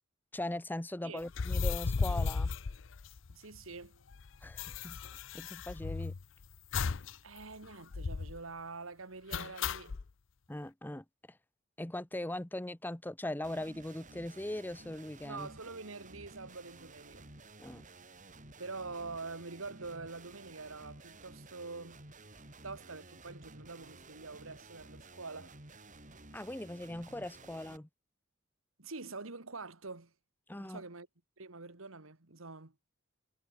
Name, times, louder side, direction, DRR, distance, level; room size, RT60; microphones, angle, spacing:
voice 1, 0.3-2.5 4.4-5.0 5.3-6.2 10.5-11.4 11.8-15.5 17.6-17.8 26.3-27.9 30.5-30.8, left 1 dB, 10° left, 0.8 m, -40 dB
sound 1, 1.3-3.6 3.8-3.9 4.1-6.2 6.7-7.1 7.4-7.5 7.9-8.4 9.3-10.0, left 4 dB, 65° left, 0.6 m, -35 dB
voice 2, 3.3-4.0 7.2-10.0 15.2-17.3 18.6-22.0 22.6-25.6 28.8-30.1 30.6-31.1 31.4-32.8, right 3 dB, 90° right, 2.0 m, -45 dB
sound 2, 13.4-27.8, right 2 dB, 40° right, 6.9 m, -54 dB
head